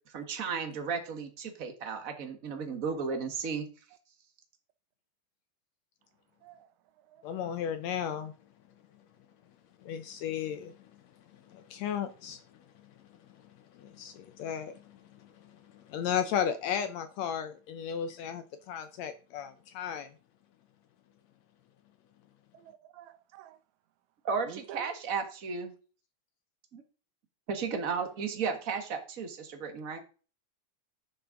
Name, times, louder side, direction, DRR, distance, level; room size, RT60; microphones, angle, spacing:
voice 1, 0.1-3.7 24.2-25.7 26.7-26.8 27.5-30.0, right 5 dB, 40° right, 1.2 m, -34 dB
voice 2, 7.2-8.3 9.8-10.7 11.5-12.4 13.7-15.5 15.9-20.1, left 8 dB, 75° left, 1.7 m, -34 dB
voice 3, 22.5-23.6 24.4-24.9, right 12 dB, 70° right, 2.0 m, -49 dB
11.0 x 6.9 x 3.8 m
omnidirectional pair, 3.8 m